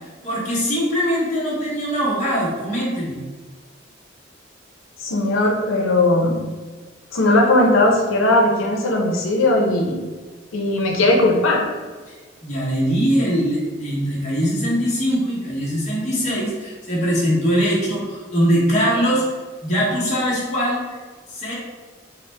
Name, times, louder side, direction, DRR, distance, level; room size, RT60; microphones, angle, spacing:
voice 1, 0.2-3.2 12.1-12.2 12.4-19.3 19.6-20.8 21.3-21.5, equal, 35° left, -6 dB, 0.9 m, -21 dB
voice 2, 5.0-6.4 7.1-10.0 10.5-11.6, left 2 dB, 90° left, 1 dB, 0.6 m, -18 dB
4.1 x 2.1 x 3.2 m, 1.4 s
head